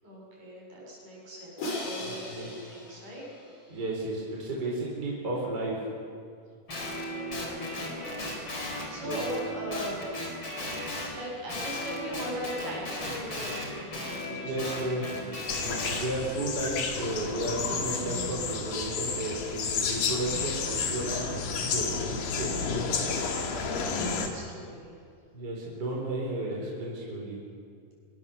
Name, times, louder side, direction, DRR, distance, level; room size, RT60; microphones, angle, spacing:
voice 1, 0.0-3.2 6.8-10.1 10.7-15.1 22.9-25.0, equal, 55° right, -3 dB, 8.7 m, -40 dB
Crash cymbal, 1.6-3.8, left 1 dB, 90° left, 7.7 m, -38 dB
voice 2, 2.0-2.5 3.7-5.7 9.0-9.2 14.4-15.2 15.6-21.9 22.3-22.5 25.3-27.4, right 2 dB, 25° right, -3 dB, 4.4 m, -33 dB
Guitar, 6.7-11.2 11.5-16.1, left 1 dB, 30° left, 4.9 m, -36 dB
sound 1, 15.5-24.3, left 5 dB, 70° left, 3.8 m, -31 dB
25.0 x 22.5 x 7.0 m, 2.3 s
omnidirectional pair, 4.4 m